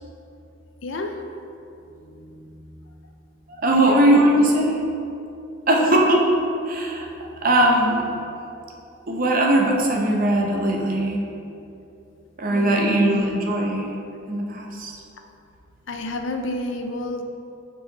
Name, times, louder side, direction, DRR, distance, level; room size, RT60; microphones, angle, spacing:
voice 1, 0.8-1.2 3.7-4.0 4.3-4.5 12.5-13.3 15.9-17.2, left 1 dB, 70° left, 5 dB, 0.6 m, -29 dB
voice 2, 1.9-2.4 3.5-4.7 5.7-6.3 6.7-7.1 7.4-8.0 9.1-11.2 12.4-13.9 14.3-15.0, right 1 dB, 45° right, 0 dB, 0.8 m, -20 dB
7.0 x 4.9 x 3.9 m, 2.7 s
head